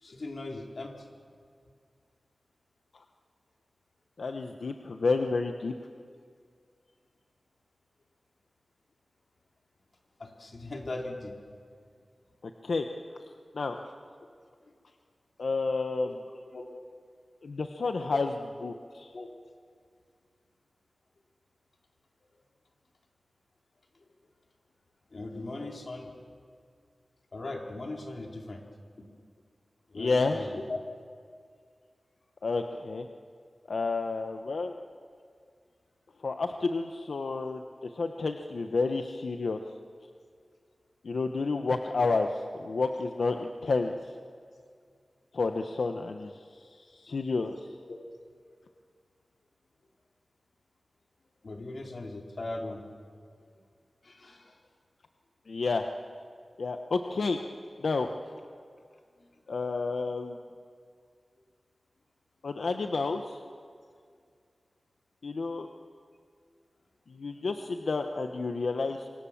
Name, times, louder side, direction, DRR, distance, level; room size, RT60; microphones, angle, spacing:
voice 1, 0.0-0.9 10.2-11.3 16.0-16.2 16.5-16.6 19.1-19.3 25.1-26.1 27.3-28.6 29.9-30.8 47.9-48.0 51.4-52.8 54.0-54.6, left 2 dB, 65° left, 1 dB, 3.7 m, -39 dB
voice 2, 4.2-5.7 12.4-12.8 13.5-13.8 15.4-16.2 17.4-18.3 18.6-19.1 29.9-30.6 32.4-33.1 33.7-34.7 36.2-39.6 41.0-44.1 45.3-47.5 55.5-55.9 56.6-57.4 57.8-58.1 59.5-60.4 62.4-63.4 65.2-65.7 67.1-69.1, left 3 dB, 90° left, 5 dB, 1.1 m, -30 dB
27.5 x 24.5 x 7.3 m, 2.1 s
wide cardioid pair, 85°, 0 cm